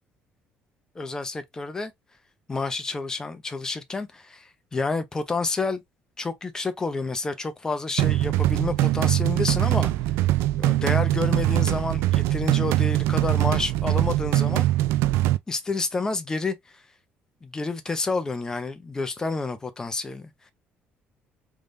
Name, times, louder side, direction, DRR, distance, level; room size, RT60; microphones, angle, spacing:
voice 1, 1.0-1.9 2.5-5.8 6.2-9.9 10.6-14.7 15.5-16.8 17.4-20.5, left 3 dB, 15° left, 0.6 m, -29 dB
sound 1, 8.0-15.4, right 15 dB, 85° right, 0.4 m, -22 dB
3.5 x 3.2 x 2.5 m
cardioid pair, 160°, 4 cm